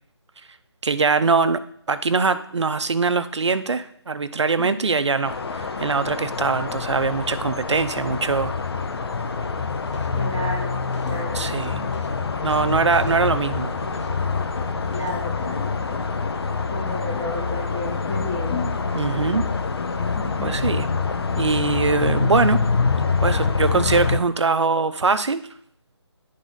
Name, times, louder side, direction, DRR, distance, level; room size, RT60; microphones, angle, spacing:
voice 1, 0.8-1.6 1.9-8.5 11.3-11.8 12.4-13.7 18.9-19.5 20.4-20.9 21.4-22.7 23.2-25.5, right 4 dB, 80° right, 12 dB, 0.7 m, -22 dB
sound 1, 5.2-24.2, left 4 dB, 60° left, 0.7 m, -25 dB
sound 2, 9.3-15.3, left 2 dB, 90° left, 1.4 m, -40 dB
voice 2, 10.1-11.5 14.9-15.7 16.7-18.7 20.1-20.6, left 2 dB, 20° left, -6 dB, 2.0 m, -32 dB
11.0 x 3.7 x 3.9 m, 0.62 s
figure-of-eight pair, 160°, 15 cm